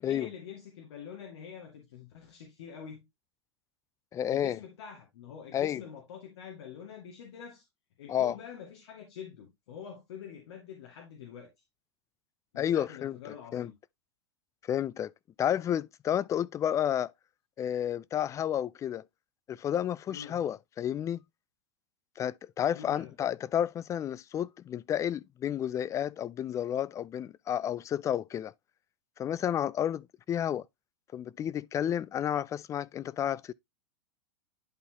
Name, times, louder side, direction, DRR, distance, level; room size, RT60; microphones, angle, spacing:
voice 1, 0.1-3.0 4.3-7.6 8.0-11.5 12.5-13.7 20.1-20.4 22.7-23.1, left 8 dB, 70° left, 2.1 m, -46 dB
voice 2, 4.1-4.6 5.5-5.8 8.1-8.3 12.6-13.2 13.5-13.7 14.7-15.1 15.4-17.1 17.6-19.0 19.5-21.2 22.2-28.5 29.2-30.6 31.1-33.5, left 10 dB, 20° left, 0.4 m, -31 dB
11.0 x 4.2 x 2.8 m
hypercardioid pair, 120°, 14 cm